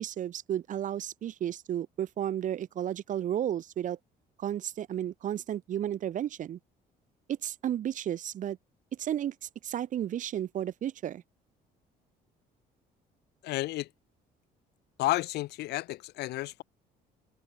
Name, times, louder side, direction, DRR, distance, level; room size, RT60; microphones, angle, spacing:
voice 1, 0.0-4.0 4.4-6.6 7.3-8.6 9.0-9.3 9.6-11.2, right 11 dB, 50° right, 0.8 m, -33 dB
voice 2, 13.4-13.9 15.0-16.6, left 17 dB, 75° left, 0.9 m, -31 dB
cardioid pair, 110°, 17 cm